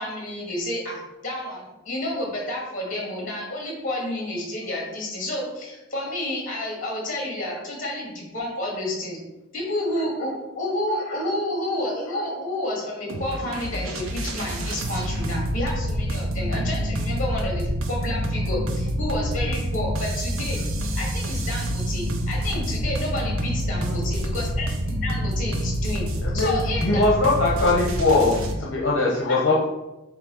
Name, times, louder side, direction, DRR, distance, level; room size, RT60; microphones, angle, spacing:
voice 1, 0.0-9.2 9.5-20.6 20.9-26.0 26.3-27.0 29.3-29.4, left 1 dB, 40° left, -2 dB, 2.4 m, -30 dB
sound 1, 13.1-28.5, equal, 85° right, 0.9 m, -27 dB
voice 2, 23.7-24.3 26.2-26.5 26.8-29.6, left 2 dB, 60° left, -4 dB, 1.1 m, -21 dB
7.7 x 2.8 x 5.5 m, 1.0 s
head